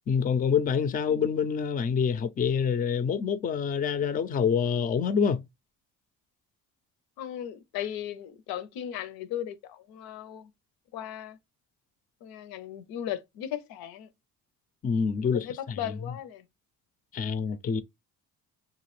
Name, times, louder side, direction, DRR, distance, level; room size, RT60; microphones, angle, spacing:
voice 1, 0.1-5.4 14.8-16.1 17.1-17.8, left 6 dB, 25° left, 0.4 m, -27 dB
voice 2, 7.2-10.5 10.9-11.4 12.2-14.1 15.4-16.4, left 10 dB, 85° left, 0.6 m, -37 dB
2.9 x 2.4 x 3.1 m
cardioid pair, 90°, 35 cm